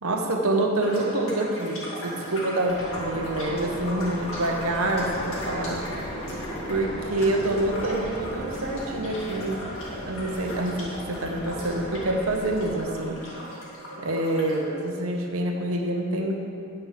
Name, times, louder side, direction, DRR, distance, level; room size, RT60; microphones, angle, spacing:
voice 1, 0.0-5.8 6.7-9.6 10.0-13.2 14.0-16.4, right 1 dB, 70° right, 2 dB, 1.0 m, -27 dB
sound 1, 0.8-14.6, equal, 65° left, 2.0 m, -38 dB
sound 2, 2.7-12.8, equal, 25° left, 1.1 m, -37 dB
9.2 x 5.4 x 5.7 m, 2.5 s
head